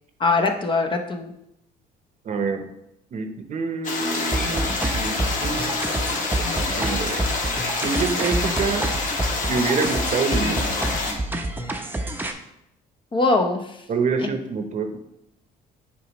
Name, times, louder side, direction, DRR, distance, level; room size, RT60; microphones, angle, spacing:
voice 1, 0.2-1.3 13.1-13.8 14.2-14.3, left 3 dB, 30° left, 4 dB, 0.8 m, -22 dB
voice 2, 2.2-2.7 3.1-6.0 6.6-7.3 7.8-8.9 9.5-10.6 13.9-15.0, right 4 dB, 45° right, 7 dB, 0.9 m, -27 dB
sound 1, 3.8-11.1, left 3 dB, 50° left, 1.4 m, -27 dB
sound 2, 4.3-12.3, right 1 dB, 10° right, 0.7 m, -28 dB
8.1 x 5.1 x 3.1 m, 0.81 s
cardioid pair, 110°, 17 cm